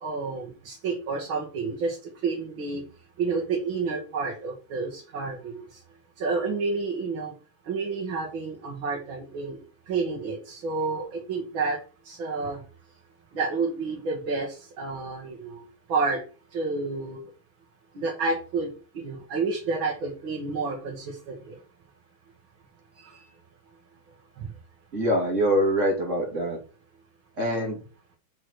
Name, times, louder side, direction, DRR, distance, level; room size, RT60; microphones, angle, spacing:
voice 1, 0.0-2.0 2.2-2.8 3.2-5.6 6.2-7.3 7.7-9.6 9.9-11.8 12.1-12.6 13.3-15.6 15.9-16.2 16.5-17.2 17.9-21.6, right 4 dB, 75° right, -2 dB, 2.4 m, -29 dB
voice 2, 24.9-26.6 27.4-27.8, equal, 35° right, -1 dB, 3.2 m, -24 dB
6.4 x 6.1 x 4.7 m, 0.37 s
omnidirectional pair, 2.2 m